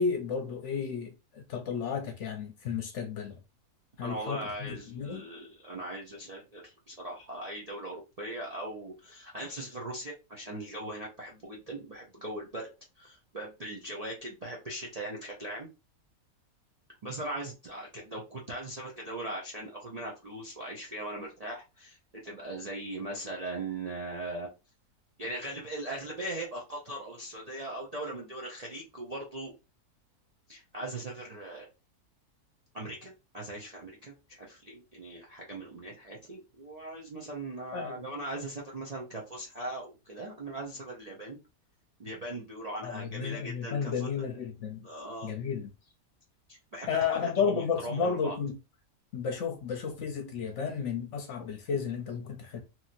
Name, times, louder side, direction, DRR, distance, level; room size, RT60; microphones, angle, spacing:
voice 1, 0.0-3.4 4.0-5.3 37.7-38.1 42.8-44.9 45.2-45.7 46.9-48.5 49.1-52.6, left 6 dB, 60° left, 0.9 m, -32 dB
voice 2, 4.0-12.7 13.0-15.7 17.0-22.0 22.2-24.5 25.2-29.5 30.5-31.7 32.7-41.4 42.0-44.2 44.8-45.3 46.5-48.4, right 1 dB, 50° right, 0.5 m, -39 dB
3.0 x 2.8 x 2.5 m
omnidirectional pair, 1.6 m